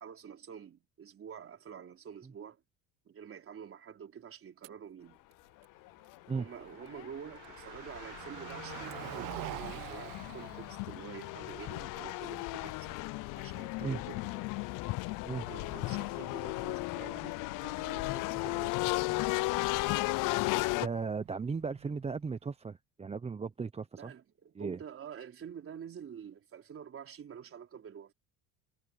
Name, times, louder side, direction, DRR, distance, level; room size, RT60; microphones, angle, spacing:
voice 1, 0.0-2.6 3.1-5.2 6.3-13.0 13.3-14.5 15.3-18.8 24.0-28.1, right 8 dB, 35° right, 4.2 m, -48 dB
sound 1, 4.6-19.6, right 24 dB, 85° right, 4.8 m, -66 dB
sound 2, 6.1-6.2 6.7-20.9, left 23 dB, 60° left, 0.5 m, -35 dB
Car passing by, 6.4-22.5, right 17 dB, 60° right, 1.5 m, -50 dB
voice 2, 20.8-24.1 24.6-24.8, right 5 dB, 15° right, 0.8 m, -36 dB
supercardioid pair, 105°, 37 cm